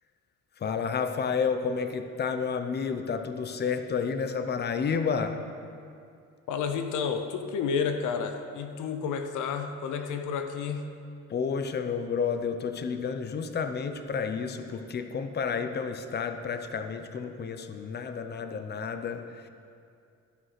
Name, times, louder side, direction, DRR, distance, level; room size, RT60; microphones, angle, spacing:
voice 1, 0.6-5.4 11.3-19.5, left 6 dB, 35° left, 8 dB, 0.7 m, -31 dB
voice 2, 6.5-10.9, left 6 dB, 85° left, 7 dB, 0.7 m, -31 dB
12.5 x 4.8 x 5.8 m, 2.4 s
cardioid pair, 90°, 30 cm